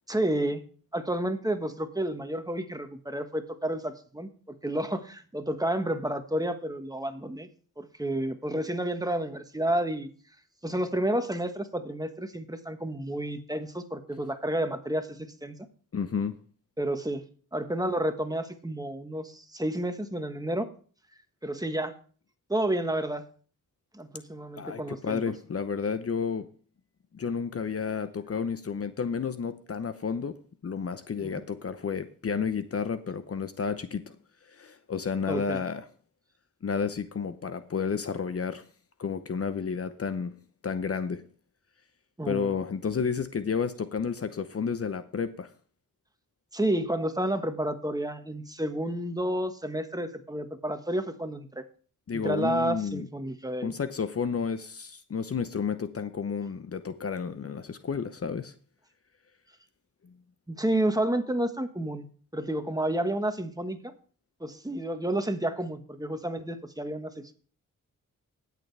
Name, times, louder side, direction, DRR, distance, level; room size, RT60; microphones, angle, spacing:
voice 1, 0.1-0.6 0.9-7.5 7.8-10.1 10.6-15.6 16.8-17.2 17.5-20.7 21.4-21.9 22.5-23.2 23.9-25.2 31.2-31.3 35.3-35.6 42.2-42.5 46.5-51.6 52.1-53.7 60.5-62.1 62.3-63.9 64.4-67.3, right 1 dB, 10° right, 7 dB, 1.5 m, -30 dB
voice 2, 15.9-16.3 24.6-26.5 27.1-30.3 30.6-34.0 34.5-35.8 36.6-38.6 39.0-40.4 40.6-41.2 42.3-45.5 52.1-53.1 53.6-58.5, left 6 dB, 45° left, 11 dB, 0.8 m, -31 dB
18.5 x 6.8 x 3.4 m, 0.42 s
cardioid pair, 55°, 32 cm